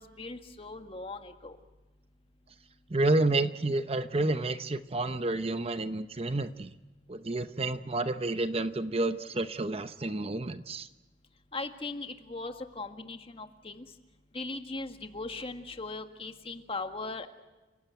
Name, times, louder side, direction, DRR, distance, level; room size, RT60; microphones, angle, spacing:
voice 1, 0.0-1.6 11.5-13.9 14.3-17.3, left 3 dB, 30° left, 6 dB, 1.7 m, -39 dB
voice 2, 2.9-6.7 7.1-10.9, right 2 dB, 35° right, 11 dB, 0.8 m, -30 dB
29.0 x 16.0 x 9.2 m, 1.1 s
head